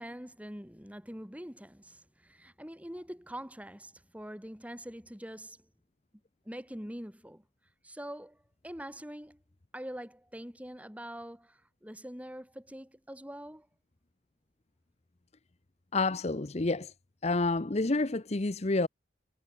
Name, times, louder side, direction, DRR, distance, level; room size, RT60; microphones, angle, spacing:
voice 1, 0.0-5.7 6.4-7.4 7.8-9.4 9.7-13.7, equal, 10° right, 6.8 m, -44 dB
voice 2, 15.9-16.9 17.2-18.9, left 3 dB, 35° left, 0.8 m, -29 dB
head